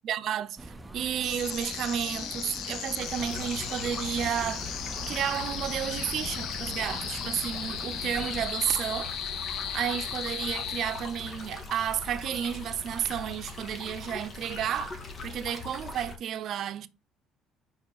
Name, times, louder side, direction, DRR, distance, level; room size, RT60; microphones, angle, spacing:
voice 1, 0.0-4.6 5.1-9.1 9.4-16.9, right 9 dB, 60° right, 0.7 m, -32 dB
sound 1, 0.6-8.5, right 1 dB, 10° right, 0.7 m, -43 dB
sound 2, 1.2-11.4, left 9 dB, 70° left, 0.9 m, -36 dB
sound 3, 3.0-16.2, left 3 dB, 40° left, 1.9 m, -41 dB
5.0 x 5.0 x 5.6 m
cardioid pair, 95°, 0 cm